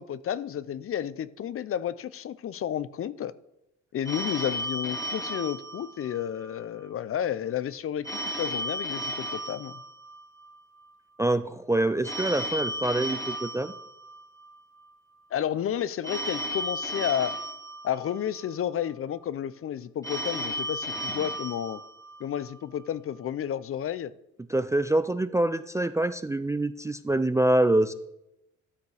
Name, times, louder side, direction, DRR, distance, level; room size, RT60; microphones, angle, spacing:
voice 1, 0.0-3.3 3.9-9.8 15.3-17.3 17.8-21.8 22.2-24.1, left 10 dB, 45° left, 0.5 m, -31 dB
Telephone, 4.0-6.5 8.0-10.5 12.0-14.5 16.0-18.5 20.0-22.5, equal, 10° left, 1.5 m, -34 dB
voice 2, 11.2-13.7 24.5-27.9, right 1 dB, 10° right, 0.3 m, -25 dB
13.0 x 8.1 x 3.4 m
cardioid pair, 90°, 30 cm